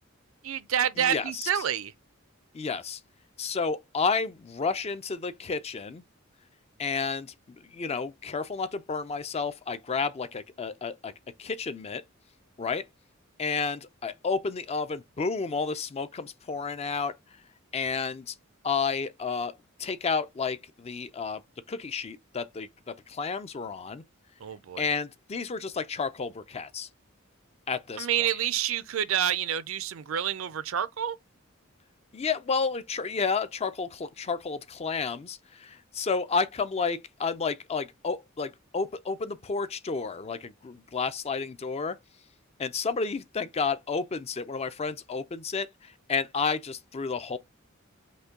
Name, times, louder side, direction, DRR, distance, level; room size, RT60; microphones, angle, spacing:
voice 1, 0.4-1.9 24.4-24.9 28.0-31.2, right 10 dB, 70° right, 0.5 m, -28 dB
voice 2, 1.0-1.6 2.5-3.0 3.4-6.0 6.8-7.3 7.7-11.1 11.4-12.0 12.6-12.8 13.4-17.1 17.7-18.3 18.6-19.5 19.8-21.4 21.7-24.0 24.8-26.9 27.7-28.3 32.1-42.0 42.6-47.4, left 5 dB, 30° left, 0.4 m, -31 dB
5.3 x 2.2 x 3.6 m
head